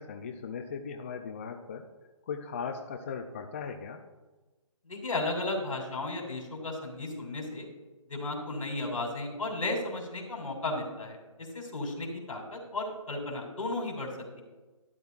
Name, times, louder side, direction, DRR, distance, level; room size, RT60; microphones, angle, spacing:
voice 1, 0.0-1.8 2.3-4.0, left 6 dB, 25° left, 5 dB, 0.4 m, -38 dB
voice 2, 4.9-7.7 8.1-14.1, left 2 dB, 75° left, 1 dB, 2.8 m, -34 dB
12.0 x 10.0 x 2.4 m, 1.2 s
hypercardioid pair, 155°, 17 cm